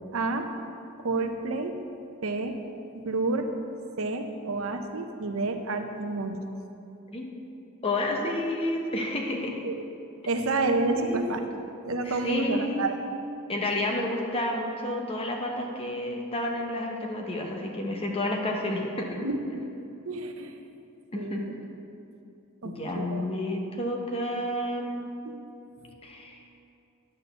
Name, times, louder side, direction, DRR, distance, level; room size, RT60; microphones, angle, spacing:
voice 1, 0.1-0.5 1.0-1.8 2.2-2.6 2.9-3.5 4.0-6.4 9.6-9.8 10.3-11.4 11.8-13.0 19.2-19.4 20.1-20.6 21.1-21.5 22.6-23.2 25.3-25.4, right 3 dB, 65° right, 5 dB, 0.7 m, -29 dB
voice 2, 7.8-9.6 11.0-11.3 12.0-13.0 13.5-19.3 21.1-21.5 22.6-25.1 26.0-26.4, left 1 dB, 25° left, 1 dB, 0.8 m, -30 dB
9.7 x 4.3 x 6.8 m, 2.8 s
head